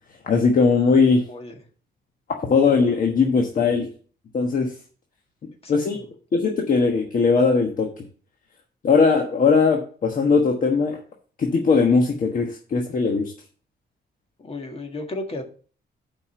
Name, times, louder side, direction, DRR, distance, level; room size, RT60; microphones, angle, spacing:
voice 1, 0.2-1.2 2.5-3.9 4.3-4.7 5.7-6.0 6.3-7.9 8.8-11.0 11.4-13.3, left 4 dB, 50° left, 2 dB, 1.3 m, -19 dB
voice 2, 5.6-6.1 14.4-15.4, left 2 dB, 35° left, 4 dB, 1.8 m, -34 dB
7.5 x 5.4 x 6.7 m, 0.42 s
wide cardioid pair, 140°, 18 cm